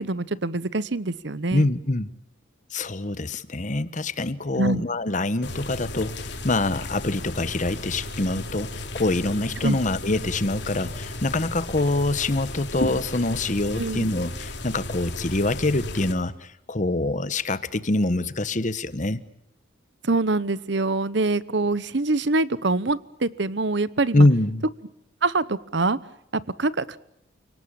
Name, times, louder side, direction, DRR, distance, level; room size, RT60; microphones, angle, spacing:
voice 1, 0.0-1.7 4.6-4.8 9.6-9.8 13.8-14.1 20.0-24.3 25.2-26.0 26.3-27.0, right 2 dB, 60° right, 18 dB, 1.0 m, -24 dB
voice 2, 1.5-2.1 2.7-19.2 24.1-24.6, left 2 dB, 40° left, 15 dB, 1.1 m, -25 dB
sound 1, 5.4-16.1, left 2 dB, 60° left, 2.9 m, -34 dB
29.5 x 18.5 x 8.8 m, 0.82 s
head